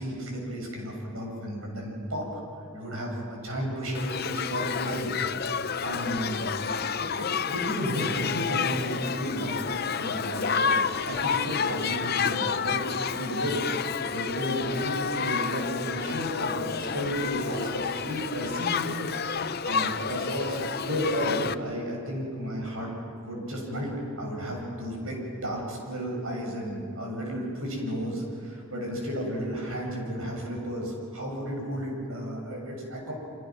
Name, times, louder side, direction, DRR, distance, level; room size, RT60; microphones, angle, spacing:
voice 1, 0.0-2.4 2.7-5.1 5.8-10.8 11.0-13.6 14.1-20.6 20.9-22.9 23.2-23.9 24.2-33.1, equal, 75° right, 0 dB, 7.5 m, -33 dB
Shout / Human group actions, 3.9-21.5, left 6 dB, 45° left, 0.6 m, -30 dB
29.0 x 25.5 x 6.2 m, 2.4 s
head